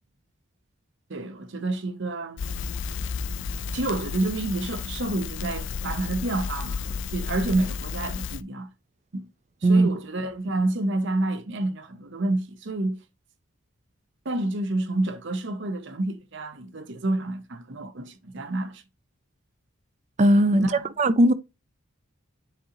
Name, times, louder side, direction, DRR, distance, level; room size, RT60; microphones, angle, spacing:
voice 1, 1.1-2.4 3.7-8.7 9.1-9.3 9.6-13.0 14.2-18.8 20.5-20.9, right 2 dB, 55° right, 0.7 m, -29 dB
Crackle, 2.4-8.4, left 5 dB, 60° left, 0.4 m, -32 dB
voice 2, 20.2-20.7 21.0-21.3, right 1 dB, 35° right, 0.4 m, -18 dB
9.9 x 3.7 x 2.9 m
head